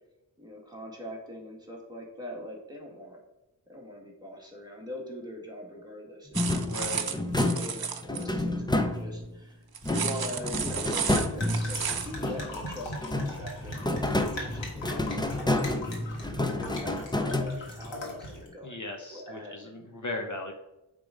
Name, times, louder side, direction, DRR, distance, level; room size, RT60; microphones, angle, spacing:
voice 1, 0.4-3.2 3.7-7.2 7.5-9.6 9.9-19.7, equal, 10° right, -2 dB, 1.9 m, -43 dB
sound 1, 6.3-9.4 9.8-12.7 13.0-17.9, left 1 dB, 10° left, 0.6 m, -30 dB
sound 2, 6.3-8.2 9.7-12.1, right 7 dB, 55° right, 0.7 m, -33 dB
voice 2, 6.6-7.0 18.6-20.5, left 2 dB, 40° left, 3 dB, 0.9 m, -37 dB
sound 3, 10.6-18.5, left 1 dB, 80° left, 2.0 m, -40 dB
8.5 x 3.8 x 5.0 m, 0.93 s
wide cardioid pair, 95°, 44 cm